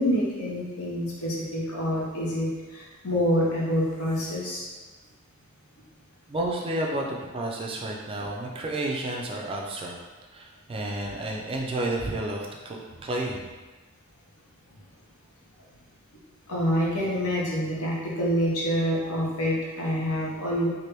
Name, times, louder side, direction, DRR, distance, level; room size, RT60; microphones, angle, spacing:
voice 1, 0.0-4.7 16.1-16.2 16.5-20.7, equal, 80° left, -4 dB, 0.9 m, -27 dB
voice 2, 6.3-10.0 10.3-13.4, right 1 dB, 25° right, -1 dB, 0.3 m, -31 dB
3.2 x 2.5 x 2.9 m, 1.3 s
head